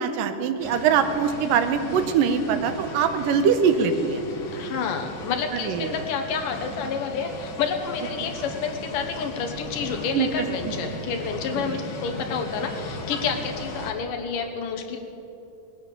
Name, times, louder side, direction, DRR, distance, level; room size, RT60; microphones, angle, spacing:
voice 1, 0.0-4.2 5.6-6.0 10.1-10.3 10.6-10.7 11.6-11.8, right 6 dB, 80° right, 8 dB, 2.5 m, -23 dB
sound 1, 0.6-13.9, left 2 dB, 50° left, 1.8 m, -37 dB
voice 2, 4.5-15.0, left 5 dB, 75° left, 4 dB, 2.8 m, -29 dB
19.5 x 9.5 x 6.8 m, 2.8 s
omnidirectional pair, 3.9 m